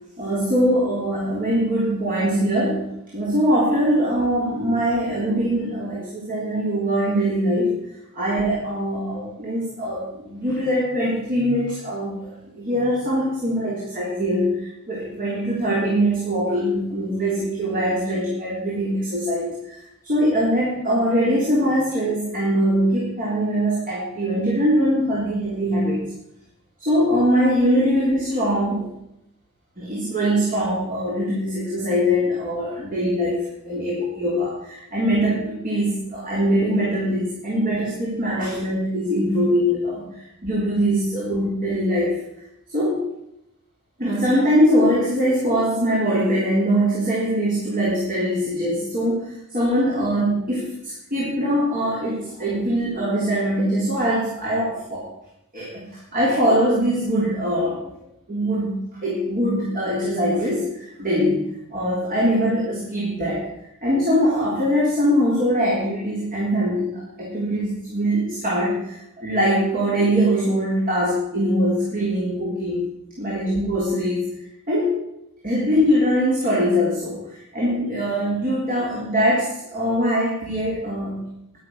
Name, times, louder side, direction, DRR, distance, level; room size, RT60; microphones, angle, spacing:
voice 1, 0.2-7.8 8.1-26.0 26.8-28.9 29.8-42.2 42.7-43.1 44.0-55.1 55.5-57.8 58.3-63.5 63.8-72.8 73.2-74.3 74.7-75.0 75.4-81.3, equal, 40° right, -5 dB, 3.7 m, -22 dB
11.5 x 9.6 x 6.3 m, 0.81 s
head